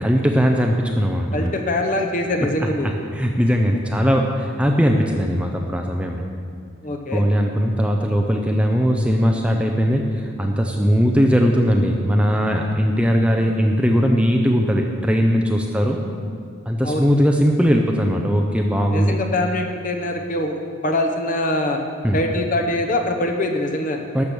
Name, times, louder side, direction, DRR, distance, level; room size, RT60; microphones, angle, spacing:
voice 1, 0.0-1.5 2.6-6.3 7.1-16.0 16.6-19.2 22.0-22.2 24.1-24.2, equal, 5° right, 2 dB, 0.5 m, -19 dB
voice 2, 1.3-2.9 6.8-7.2 16.8-17.1 18.9-20.6 20.8-21.8 22.1-24.0, left 1 dB, 40° left, 3 dB, 1.0 m, -23 dB
12.0 x 6.9 x 6.2 m, 2.2 s
head